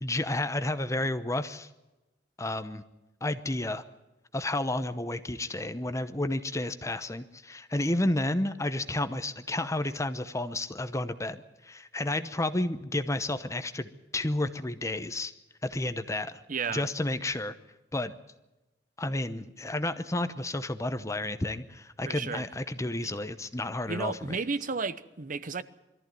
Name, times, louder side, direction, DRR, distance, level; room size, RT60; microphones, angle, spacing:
voice 1, 0.0-1.7 2.4-2.8 3.2-3.8 4.3-15.3 15.6-16.4 16.7-17.6 17.9-18.1 19.0-24.4, left 1 dB, 15° left, 0.9 m, -31 dB
voice 2, 16.5-16.9 22.1-22.5 23.0-23.1 23.9-25.6, right 4 dB, 50° right, 0.9 m, -33 dB
22.5 x 14.0 x 9.3 m
head